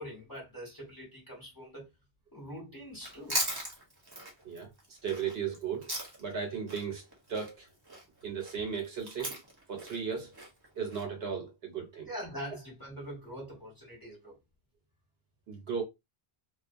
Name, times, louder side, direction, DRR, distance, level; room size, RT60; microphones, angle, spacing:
voice 1, 0.0-1.9 2.3-3.4 12.0-14.3, equal, 20° left, 1.1 m, -43 dB
Chewing mastication, 2.9-6.4 6.7-11.0, right 1 dB, 25° right, 0.8 m, -38 dB
voice 2, 5.0-5.9 6.2-7.0 7.3-7.6 8.2-9.4 9.7-10.3 10.8-12.1 15.5-15.8, right 6 dB, 70° right, 1.1 m, -35 dB
2.4 x 2.2 x 2.5 m
omnidirectional pair, 1.1 m